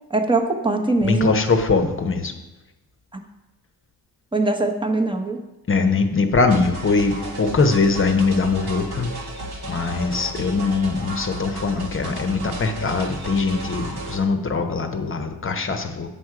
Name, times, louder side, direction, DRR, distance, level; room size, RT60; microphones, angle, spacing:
voice 1, 0.1-1.3 3.1-3.2 4.3-5.4, right 2 dB, 10° right, 4 dB, 1.0 m, -22 dB
voice 2, 1.0-2.3 5.7-9.1 9.7-16.1, left 4 dB, 30° left, 6 dB, 0.9 m, -21 dB
sound 1, 6.5-14.2, right 1 dB, 80° right, 1.7 m, -34 dB
8.8 x 6.1 x 4.9 m, 1.0 s
cardioid pair, 115°, 39 cm